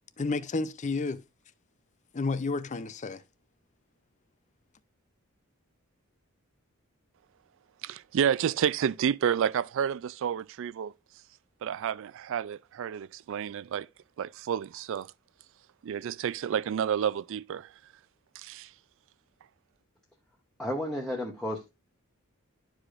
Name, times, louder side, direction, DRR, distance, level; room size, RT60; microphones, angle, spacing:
voice 1, 0.2-1.2 2.1-3.2, left 3 dB, 35° left, 0.5 m, -31 dB
voice 2, 7.8-10.9 11.6-13.9 14.2-15.1 15.8-17.7 18.4-18.7, right 8 dB, 65° right, 0.3 m, -30 dB
voice 3, 20.6-21.7, left 1 dB, 5° left, 0.9 m, -32 dB
11.5 x 4.9 x 2.5 m
head